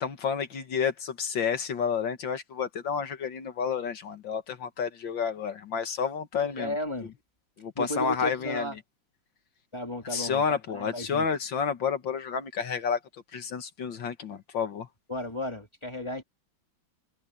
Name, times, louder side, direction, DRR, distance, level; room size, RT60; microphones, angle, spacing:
voice 1, 0.0-6.7 7.6-8.7 10.0-13.0 13.3-14.9, left 6 dB, 65° left, 2.1 m, -30 dB
voice 2, 6.4-7.1 7.8-8.7 9.7-10.4 10.7-11.3 15.1-16.2, left 1 dB, 15° left, 2.1 m, -34 dB
omnidirectional pair, 2.2 m